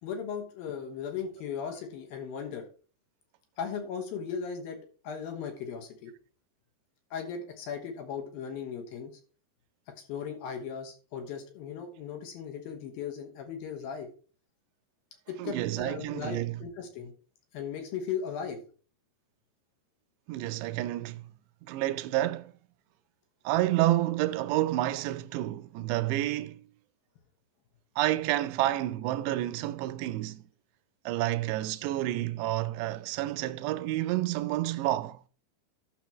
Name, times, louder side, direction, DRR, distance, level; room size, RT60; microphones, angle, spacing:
voice 1, 0.0-2.7 3.6-6.1 7.1-9.2 10.0-14.1 15.3-17.1 17.5-18.6, left 7 dB, 65° left, 2.7 m, -37 dB
voice 2, 15.4-16.6 20.3-21.3 21.7-22.5 23.5-26.6 28.0-30.4 31.1-35.2, right 15 dB, 80° right, 2.6 m, -29 dB
12.0 x 6.8 x 3.0 m
omnidirectional pair, 5.1 m